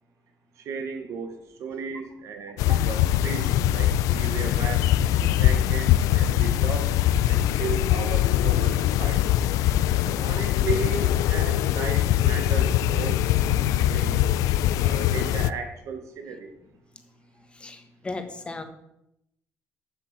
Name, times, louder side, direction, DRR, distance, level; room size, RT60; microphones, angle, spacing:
voice 1, 0.6-7.0 7.3-9.2 10.1-14.2 14.8-16.5, right 5 dB, 65° right, 6 dB, 1.3 m, -35 dB
sound 1, 2.6-15.5, left 12 dB, 90° left, 0.4 m, -22 dB
voice 2, 9.5-10.3 16.6-16.7 17.4-18.6, left 3 dB, 20° left, 7 dB, 1.3 m, -39 dB
8.6 x 6.3 x 7.3 m, 0.81 s
cardioid pair, 135°, 6 cm